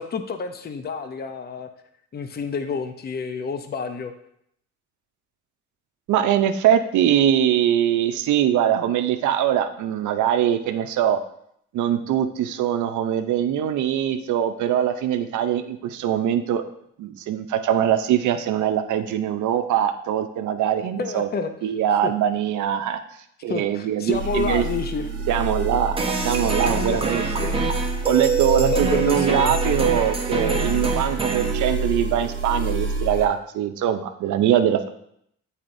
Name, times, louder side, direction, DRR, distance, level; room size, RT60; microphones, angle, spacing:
voice 1, 0.0-1.7 2.1-4.1 21.0-21.5 22.0-22.1 23.5-25.1 26.9-27.5 28.6-29.8, left 5 dB, 35° left, 8 dB, 0.6 m, -29 dB
voice 2, 6.1-11.2 11.7-16.6 17.0-21.3 21.6-23.0 23.4-24.6 25.3-27.3 28.1-34.9, right 10 dB, 75° right, 8 dB, 0.6 m, -22 dB
sound 1, 24.1-33.3, right 3 dB, 40° right, 1.4 m, -28 dB
sound 2, 26.0-31.5, right 4 dB, 20° right, 0.8 m, -26 dB
8.7 x 4.1 x 2.6 m, 0.72 s
cardioid pair, 90°, 30 cm